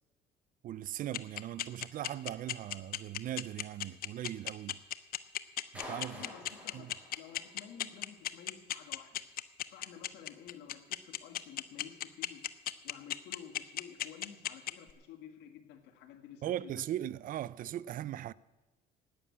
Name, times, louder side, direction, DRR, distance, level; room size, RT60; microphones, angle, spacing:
voice 1, 0.6-4.8 5.7-6.3 6.7-6.9 16.4-18.3, right 12 dB, 55° right, 0.4 m, -39 dB
sound 1, 1.1-14.9, left 13 dB, 60° left, 0.7 m, -35 dB
Clapping, 5.7-7.8, left 1 dB, 5° right, 6.0 m, -48 dB
voice 2, 6.1-9.2 9.7-12.5 12.8-16.8, left 9 dB, 90° left, 1.7 m, -52 dB
11.0 x 9.8 x 8.5 m
cardioid pair, 110°, 17 cm